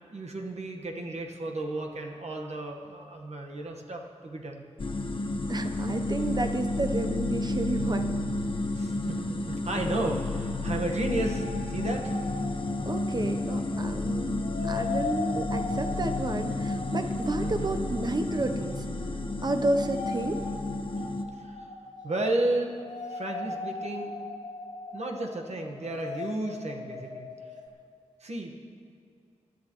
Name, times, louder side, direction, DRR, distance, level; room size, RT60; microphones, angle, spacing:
voice 1, 0.1-4.6 8.7-12.2 17.4-17.7 21.4-21.7 22.0-22.7 23.1-24.2 24.9-27.3 28.2-28.6, right 2 dB, 65° right, 1 dB, 1.4 m, -33 dB
sound 1, 4.8-21.2, left 2 dB, 45° left, 0.9 m, -31 dB
voice 2, 5.5-8.2 12.9-18.9 19.4-20.4, right 2 dB, 35° right, 6 dB, 0.8 m, -31 dB
sound 2, 10.5-13.9 14.3-27.7, left 4 dB, 85° left, 1.6 m, -39 dB
22.0 x 11.5 x 3.1 m, 2.3 s
wide cardioid pair, 115°, 12 cm